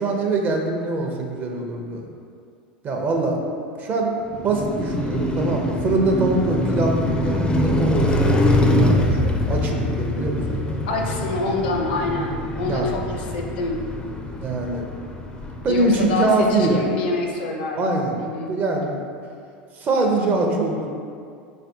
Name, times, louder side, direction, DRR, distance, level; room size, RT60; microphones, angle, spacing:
voice 1, 0.0-2.1 2.8-3.4 3.8-4.1 4.4-7.0 7.2-10.6 12.7-12.9 14.4-14.9 15.6-16.8 17.7-18.2 18.5-19.0 19.7-20.9, right 2 dB, 35° right, 1 dB, 0.6 m, -23 dB
Car passing by, 4.3-16.5, left 1 dB, 15° left, 0.4 m, -24 dB
voice 2, 10.9-13.8 15.7-18.5, left 3 dB, 70° left, 1 dB, 0.5 m, -26 dB
4.1 x 3.3 x 2.7 m, 2.3 s
hypercardioid pair, 85°, 5 cm